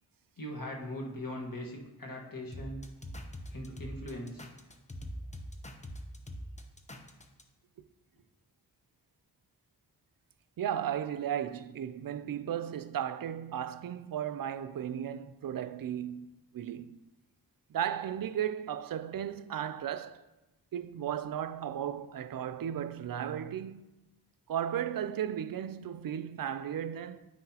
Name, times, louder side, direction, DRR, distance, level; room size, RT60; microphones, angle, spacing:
voice 1, 0.4-2.8 3.5-4.5, left 1 dB, 55° left, 1.6 m, -40 dB
sound 1, 2.5-7.4, equal, 15° left, 0.8 m, -43 dB
voice 2, 10.6-17.0 17.7-20.2 20.7-23.8 24.5-27.3, right 9 dB, 60° right, 0.5 m, -35 dB
9.3 x 5.8 x 2.9 m
cardioid pair, 45°, 40 cm